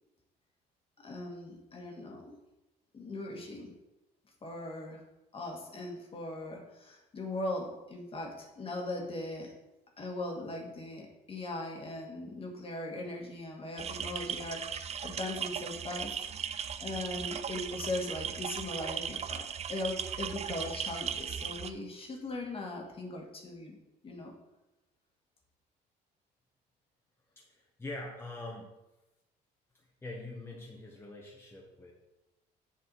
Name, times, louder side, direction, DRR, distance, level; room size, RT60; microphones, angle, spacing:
voice 1, 1.0-2.4 2.9-3.7 4.4-5.0 5.3-9.5 10.0-16.2 16.8-23.8 24.0-24.3, left 2 dB, 35° left, 1 dB, 1.9 m, -39 dB
sound 1, 13.8-21.7, right 8 dB, 40° right, 0.5 m, -37 dB
voice 2, 27.4-28.8 29.7-31.9, left 2 dB, 15° left, -2 dB, 1.4 m, -44 dB
7.4 x 7.3 x 4.2 m, 0.97 s
cardioid pair, 110°, 17 cm